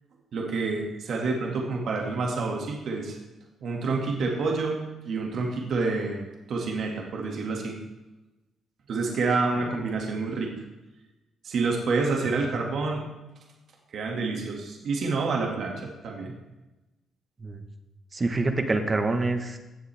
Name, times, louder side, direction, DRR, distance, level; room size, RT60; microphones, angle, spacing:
voice 1, 0.3-3.2 3.6-4.8 5.1-7.8 8.9-10.5 11.4-13.0 13.9-15.7 16.0-16.3, right 3 dB, 65° right, 0 dB, 2.1 m, -28 dB
voice 2, 18.1-19.6, right 2 dB, 30° right, 6 dB, 1.3 m, -26 dB
16.5 x 7.4 x 3.5 m, 1.0 s
cardioid pair, 90°, 0 cm